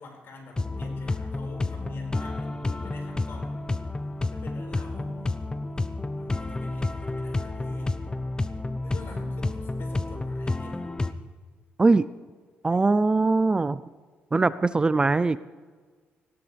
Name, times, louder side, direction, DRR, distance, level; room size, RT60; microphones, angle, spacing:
voice 1, 0.0-3.6 4.2-5.5 6.2-8.0 8.8-10.8, left 3 dB, 60° left, 0 dB, 5.3 m, -47 dB
sound 1, 0.6-11.1, left 2 dB, 20° left, 0.8 m, -30 dB
voice 2, 12.6-13.8 14.3-15.4, right 3 dB, 20° right, 15 dB, 0.4 m, -21 dB
19.5 x 17.0 x 3.4 m, 1.5 s
cardioid pair, 110°, 4 cm